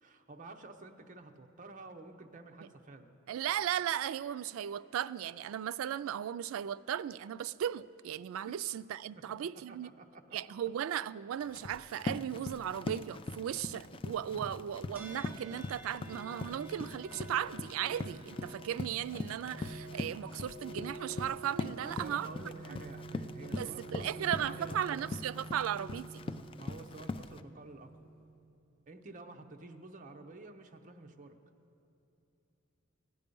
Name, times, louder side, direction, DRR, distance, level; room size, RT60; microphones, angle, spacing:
voice 1, 0.0-3.1 8.5-8.6 9.2-10.4 14.3-14.7 21.7-25.1 26.6-28.1 28.9-31.4, right 2 dB, 40° right, 0.7 m, -50 dB
voice 2, 3.3-9.9 10.3-22.3 22.7-22.8 23.5-26.1, right 10 dB, 90° right, 0.3 m, -36 dB
Run, 11.4-27.4, left 3 dB, 25° left, 0.3 m, -42 dB
sound 1, 15.0-28.5, right 2 dB, 10° right, 1.9 m, -49 dB
16.0 x 10.0 x 5.3 m
head